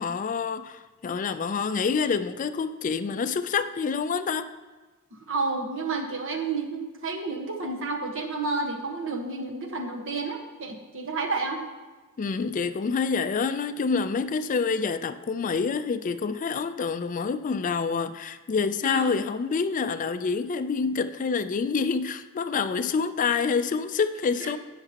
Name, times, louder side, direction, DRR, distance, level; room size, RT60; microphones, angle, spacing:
voice 1, 0.0-4.5 12.2-24.6, left 5 dB, 35° left, 11 dB, 0.3 m, -27 dB
voice 2, 5.1-11.6 18.8-19.2 24.4-24.5, right 3 dB, 65° right, 2 dB, 1.3 m, -31 dB
18.0 x 6.0 x 2.9 m, 1.3 s
head